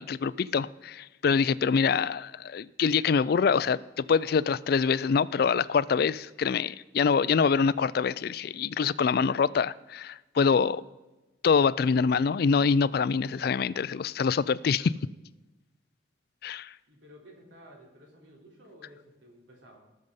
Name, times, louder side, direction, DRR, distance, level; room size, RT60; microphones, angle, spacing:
voice 1, 0.0-10.8 11.4-14.9 16.4-16.7, left 5 dB, 55° left, 0.3 m, -25 dB
voice 2, 16.9-19.8, equal, 80° right, 3.3 m, -53 dB
18.5 x 6.6 x 5.4 m
head